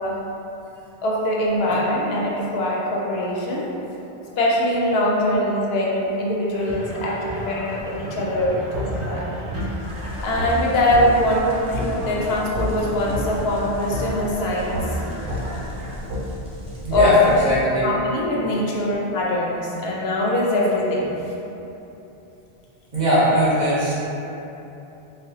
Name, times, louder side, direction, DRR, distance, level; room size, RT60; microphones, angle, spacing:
voice 1, 1.0-3.7 4.4-9.3 10.2-14.8 16.9-17.4 17.8-21.1, left 1 dB, 75° left, -4 dB, 0.8 m, -22 dB
sound 1, 6.5-15.9, right 1 dB, 65° right, 1.3 m, -37 dB
sound 2, 8.7-8.9 9.5-9.7 10.4-10.5 10.9-11.1 11.7-11.9 12.5-12.7 13.1-13.2 13.9-14.0 14.7-14.9 15.3-15.4 16.1-16.2 16.9-17.1, equal, 90° right, 0.9 m, -27 dB
sound 3, 9.8-17.6, equal, 5° right, 0.5 m, -37 dB
voice 2, 16.8-17.2 17.5-17.9 22.9-23.9, right 1 dB, 45° right, -10 dB, 0.9 m, -21 dB
4.1 x 2.0 x 2.7 m, 3.0 s
omnidirectional pair, 1.1 m